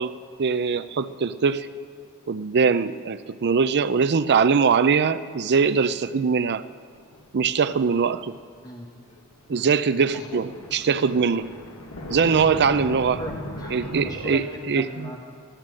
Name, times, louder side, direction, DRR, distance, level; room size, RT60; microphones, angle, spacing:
voice 1, 0.0-1.7 2.3-6.6 7.3-8.4 9.5-11.5 12.1-13.2 13.7-14.8, right 5 dB, 50° right, 13 dB, 0.5 m, -22 dB
sound 1, 6.9-7.6 7.8-8.3 9.1-9.3 9.7-14.3, left 1 dB, 75° left, 1.8 m, -37 dB
voice 2, 9.5-9.8 10.1-10.4 13.2-15.2, equal, 15° left, 0 dB, 1.2 m, -37 dB
14.0 x 11.0 x 7.6 m, 2.2 s
head